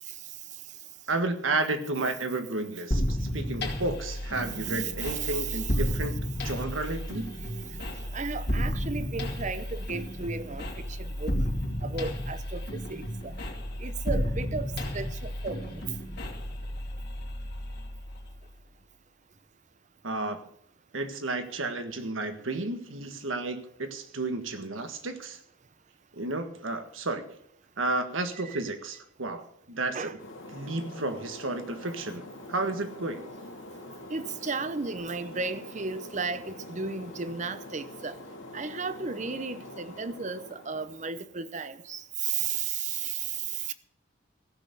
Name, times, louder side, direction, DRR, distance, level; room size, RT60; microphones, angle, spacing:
voice 1, 1.1-7.3 20.0-20.5 20.9-25.4 26.1-27.3 27.8-30.2 30.5-32.2 32.5-33.3, right 2 dB, 85° right, 1.6 m, -32 dB
sound 1, 2.9-18.5, equal, 55° left, 2.6 m, -32 dB
voice 2, 4.6-5.8 7.4-7.8 8.1-11.4 11.8-13.3 13.8-15.8 28.4-28.6 29.9-30.1 34.1-38.2 38.5-43.7, right 5 dB, 40° right, 0.8 m, -34 dB
sound 2, 30.2-41.2, left 2 dB, 75° left, 2.2 m, -45 dB
15.0 x 6.8 x 8.3 m
head